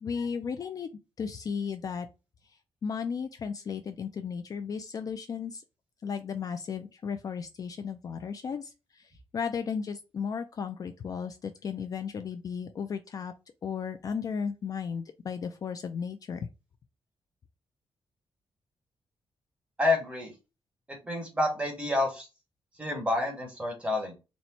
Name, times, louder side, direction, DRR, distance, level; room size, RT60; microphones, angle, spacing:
voice 1, 0.0-0.9 1.2-2.1 2.8-5.6 6.0-13.3 13.6-16.5, left 6 dB, 40° left, 0.3 m, -35 dB
voice 2, 19.8-20.3 20.9-22.3 22.8-24.1, left 2 dB, 10° right, 1.3 m, -29 dB
4.1 x 2.1 x 4.2 m
wide cardioid pair, 170°, 9 cm